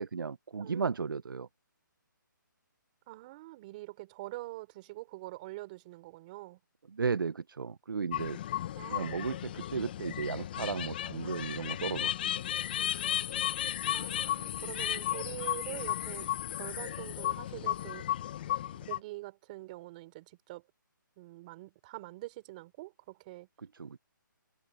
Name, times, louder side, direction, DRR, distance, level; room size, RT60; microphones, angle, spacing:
voice 1, 0.0-1.5 6.9-8.4 8.9-12.1 23.8-24.0, right 5 dB, 85° right, 0.8 m, -34 dB
voice 2, 0.6-1.0 3.1-6.6 8.8-9.2 13.9-18.1 18.7-20.6 21.2-23.5, right 19 dB, 25° right, 3.7 m, -45 dB
sound 1, 8.1-19.0, left 12 dB, 30° left, 0.8 m, -34 dB
hypercardioid pair, 165°, 11 cm